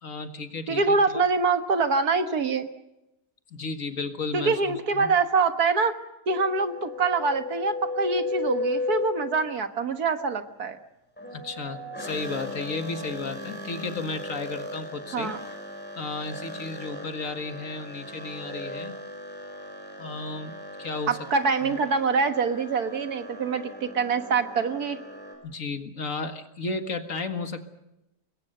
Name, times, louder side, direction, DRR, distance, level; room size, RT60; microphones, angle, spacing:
voice 1, 0.0-1.2 3.5-5.1 11.3-15.3 16.0-18.9 20.0-21.3 21.6-21.8 25.4-27.7, left 3 dB, 50° left, 7 dB, 2.0 m, -34 dB
voice 2, 0.7-2.7 4.3-6.0 6.3-10.8 15.1-15.4 21.1-25.0, right 4 dB, 65° right, 8 dB, 1.9 m, -25 dB
sound 1, 6.3-9.6 11.2-25.3, left 2 dB, 5° left, 7.1 m, -36 dB
26.0 x 21.5 x 6.7 m, 0.90 s
omnidirectional pair, 1.8 m